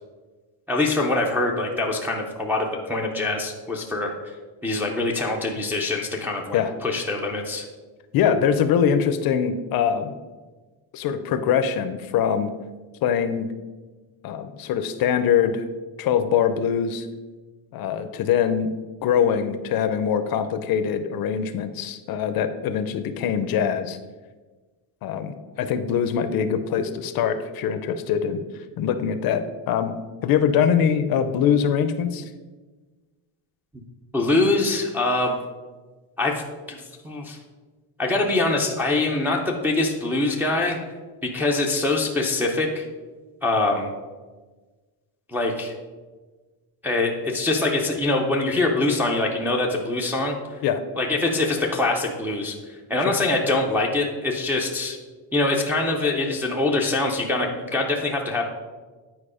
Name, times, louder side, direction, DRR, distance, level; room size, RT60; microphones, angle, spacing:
voice 1, 0.7-4.3 4.6-7.6 34.1-35.4 36.2-37.4 38.0-40.8 41.2-42.9 43.4-43.9 45.3-45.7 46.8-50.6 51.0-55.0 55.3-58.4, left 2 dB, 5° right, -1 dB, 0.4 m, -24 dB
voice 2, 8.1-10.2 10.9-12.5 13.0-13.5 14.2-15.7 16.0-17.1 17.7-18.7 19.0-24.0 25.0-28.4 28.8-29.9 30.2-32.3 50.6-50.8 53.0-53.1, left 8 dB, 50° left, 10 dB, 0.5 m, -23 dB
9.0 x 4.6 x 4.9 m, 1.3 s
cardioid pair, 180°, 45 cm